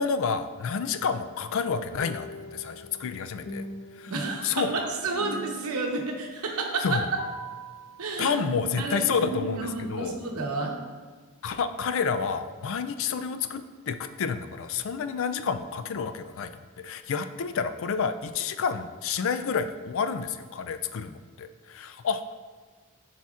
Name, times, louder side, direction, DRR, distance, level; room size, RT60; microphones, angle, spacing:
voice 1, 0.0-3.7 4.0-4.1 4.4-4.7 6.8-7.0 8.2-10.2 11.4-13.6 13.9-22.3, left 6 dB, 60° left, 9 dB, 0.4 m, -29 dB
sound 1, 2.0-9.8, equal, 75° left, 0.7 m, -40 dB
voice 2, 4.1-7.0 8.0-8.4 8.8-9.0 9.4-10.8, right 3 dB, 80° right, 1 dB, 0.9 m, -30 dB
10.5 x 4.1 x 2.4 m, 1.5 s
head